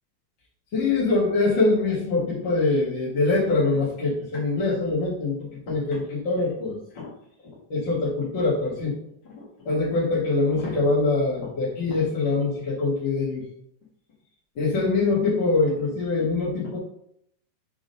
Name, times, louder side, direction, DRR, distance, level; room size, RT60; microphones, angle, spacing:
voice 1, 0.7-5.4 5.7-6.8 7.7-8.9 9.6-13.4 14.5-16.8, left 3 dB, 45° left, -7 dB, 1.8 m, -23 dB
5.8 x 3.7 x 5.2 m, 0.72 s
omnidirectional pair, 3.9 m